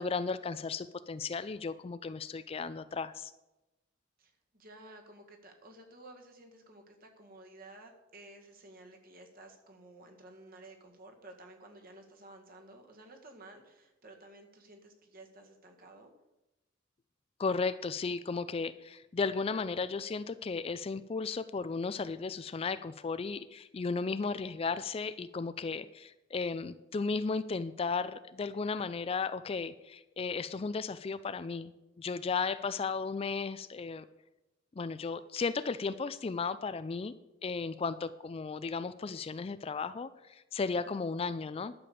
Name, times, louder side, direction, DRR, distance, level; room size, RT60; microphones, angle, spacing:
voice 1, 0.0-3.3 17.4-31.7 32.0-34.0 34.7-37.1 37.4-41.7, left 4 dB, 30° left, 14 dB, 0.3 m, -35 dB
voice 2, 4.2-16.1 40.8-41.0, right 2 dB, 45° right, 3 dB, 1.8 m, -54 dB
11.5 x 6.8 x 6.9 m, 0.98 s
head